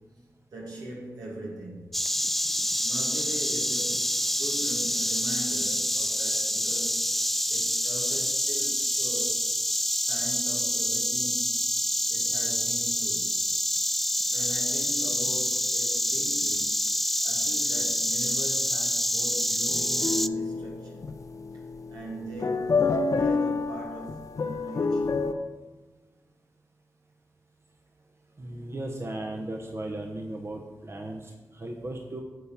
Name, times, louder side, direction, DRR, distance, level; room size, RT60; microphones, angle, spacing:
voice 1, 0.5-1.9 2.8-7.2 7.5-9.5 9.9-11.6 12.1-13.3 14.3-16.8 17.2-21.1 21.9-25.2 31.8-31.9, right 1 dB, 85° right, -3 dB, 2.5 m, -40 dB
Insect, 1.9-20.3, equal, 5° left, 0.3 m, -27 dB
sound 1, 19.7-25.3, left 4 dB, 60° left, 0.6 m, -29 dB
voice 2, 28.4-32.2, right 1 dB, 40° right, 2 dB, 1.0 m, -36 dB
9.5 x 4.2 x 7.2 m, 1.3 s
cardioid pair, 50°, 6 cm